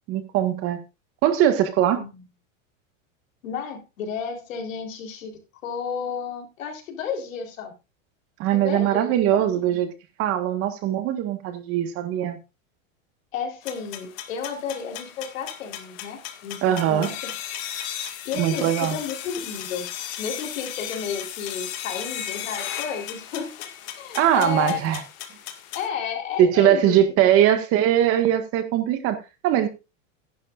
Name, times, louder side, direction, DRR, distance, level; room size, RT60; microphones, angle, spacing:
voice 1, 0.1-0.8 1.2-2.0 8.4-9.9 10.2-12.4 16.6-17.1 18.4-19.0 24.1-25.0 26.4-29.7, right 11 dB, 35° right, 1.8 m, -21 dB
voice 2, 3.4-5.3 5.6-7.7 8.5-9.9 13.3-17.3 18.3-19.9 20.2-23.7 24.0-24.8 25.7-27.0 27.3-27.4, left 6 dB, 80° left, 3.9 m, -32 dB
sound 1, 13.6-25.9, left 11 dB, 40° left, 2.0 m, -36 dB
14.5 x 11.0 x 2.5 m
supercardioid pair, 150°, 39 cm